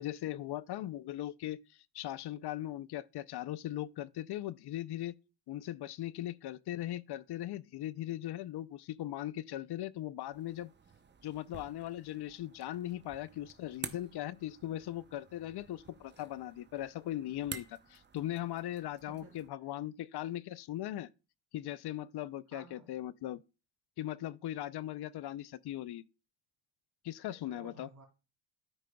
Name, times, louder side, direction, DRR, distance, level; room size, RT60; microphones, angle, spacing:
voice 1, 0.0-1.6 1.9-5.1 5.5-10.7 11.2-21.1 21.5-23.4 24.0-26.0 27.0-27.9, left 13 dB, 60° left, 0.5 m, -39 dB
sound 1, 10.3-19.5, right 5 dB, 25° right, 0.6 m, -51 dB
voice 2, 19.1-19.4 22.5-22.9 27.3-28.1, right 4 dB, 40° right, 2.9 m, -54 dB
13.0 x 4.9 x 2.3 m
cardioid pair, 95°, 47 cm